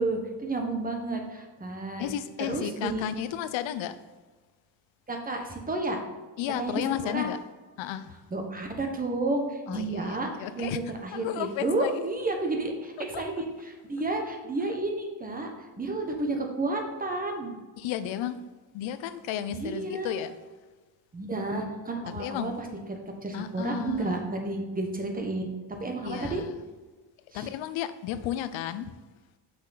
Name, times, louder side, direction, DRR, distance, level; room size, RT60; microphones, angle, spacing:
voice 1, 0.0-2.0 2.5-3.0 5.1-6.0 6.6-7.3 8.3-17.5 19.5-20.2 21.1-22.5 22.9-25.5 25.8-26.4 27.3-27.5, right 2 dB, 20° right, 1.1 m, -31 dB
voice 2, 2.0-4.0 6.4-7.4 7.8-8.1 9.7-10.8 11.1-12.0 13.1-13.2 17.8-18.4 18.7-20.4 22.1-22.5 23.3-24.1 26.0-26.5 27.3-28.9, left 11 dB, 85° left, 0.6 m, -33 dB
6.3 x 6.0 x 4.0 m
cardioid pair, 140°, 45 cm